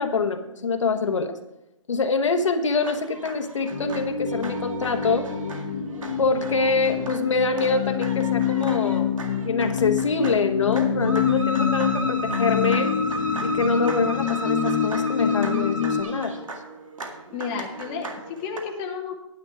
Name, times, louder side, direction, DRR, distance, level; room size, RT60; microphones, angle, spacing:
voice 1, 0.0-1.4 1.9-5.3 6.2-9.1 9.4-13.0 13.4-16.4, left 4 dB, 70° left, 6 dB, 1.3 m, -25 dB
sound 1, 2.7-18.6, right 1 dB, 80° right, 2.0 m, -35 dB
sound 2, 3.7-16.0, left 8 dB, 40° left, 1.3 m, -26 dB
voice 2, 17.3-19.2, left 6 dB, 15° left, 0 dB, 1.1 m, -32 dB
10.0 x 9.8 x 4.8 m, 0.89 s
hypercardioid pair, 165°, 17 cm